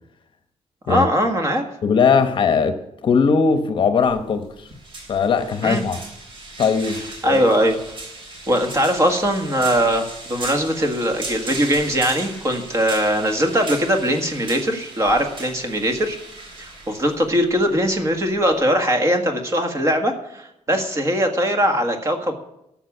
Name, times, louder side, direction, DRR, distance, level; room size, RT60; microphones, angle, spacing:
voice 1, 0.9-1.6 5.6-5.8 7.2-7.8 8.5-16.2 16.6-22.3, equal, 25° right, 1.7 m, -20 dB
voice 2, 1.8-4.7 5.1-6.0 6.6-7.4, left 5 dB, 45° left, 0.9 m, -19 dB
sound 1, 4.0-18.6, right 2 dB, 50° right, 3.5 m, -37 dB
12.5 x 7.4 x 9.8 m
wide cardioid pair, 175°, 12 cm